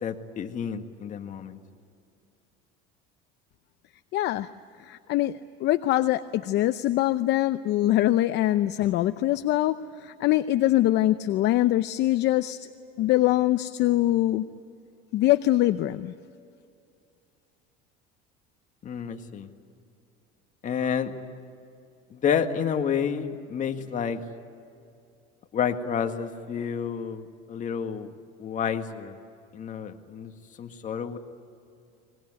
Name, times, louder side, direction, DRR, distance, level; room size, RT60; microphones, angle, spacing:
voice 1, 0.0-1.6 18.8-19.5 20.6-21.1 22.1-24.2 25.5-28.1 28.4-29.2 29.5-30.3 30.6-31.2, left 7 dB, 40° left, 5 dB, 2.0 m, -29 dB
voice 2, 4.1-4.5 4.8-12.6 13.0-14.5 15.1-16.1, left 15 dB, 55° left, 11 dB, 0.7 m, -23 dB
24.5 x 21.5 x 9.8 m, 2.5 s
cardioid pair, 120°, 21 cm